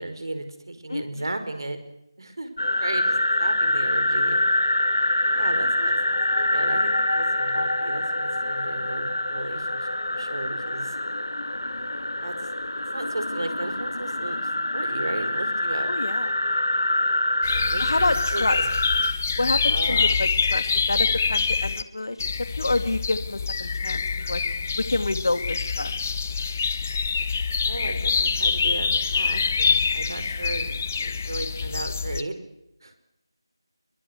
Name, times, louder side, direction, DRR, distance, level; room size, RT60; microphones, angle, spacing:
voice 1, 0.0-1.8 2.2-4.4 5.3-5.9 6.3-11.0 12.2-12.4 12.9-15.9 17.5-18.7 19.7-20.2 27.7-32.4 32.8-33.0, right 2 dB, 60° right, 9 dB, 5.2 m, -35 dB
voice 2, 0.9-1.3 15.9-16.3 17.8-18.6 19.4-22.2 22.6-24.4 24.8-25.9, left 2 dB, 55° left, 10 dB, 2.5 m, -28 dB
sound 1, 2.6-19.1, left 1 dB, 75° left, 3.0 m, -25 dB
sound 2, 17.4-21.8 22.2-32.2, left 5 dB, 30° left, 1.0 m, -25 dB
26.0 x 22.5 x 8.2 m, 0.84 s
figure-of-eight pair, 170°, 2 cm